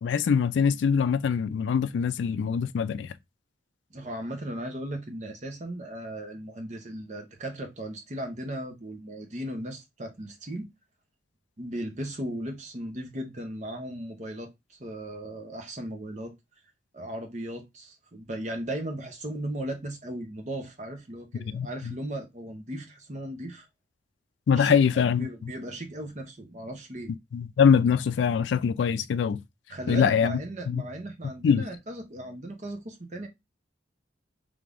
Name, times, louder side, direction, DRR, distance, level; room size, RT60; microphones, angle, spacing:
voice 1, 0.0-3.1 21.5-21.9 24.5-25.3 27.3-29.4 29.9-30.4 30.7-30.8 31.4-31.6, left 6 dB, 80° left, 0.3 m, -23 dB
voice 2, 3.9-10.7 11.6-16.3 16.9-23.7 24.5-27.1 29.7-33.3, right 1 dB, 40° right, 0.8 m, -37 dB
3.4 x 3.3 x 2.4 m
head